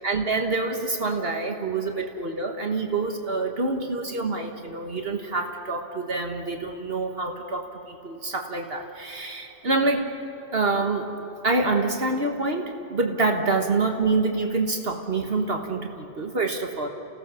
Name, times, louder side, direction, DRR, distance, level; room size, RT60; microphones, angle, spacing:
voice 1, 0.0-10.0 10.5-11.1 11.4-16.9, right 3 dB, 55° right, 3 dB, 1.6 m, -26 dB
29.0 x 16.5 x 7.0 m, 2.9 s
omnidirectional pair, 1.3 m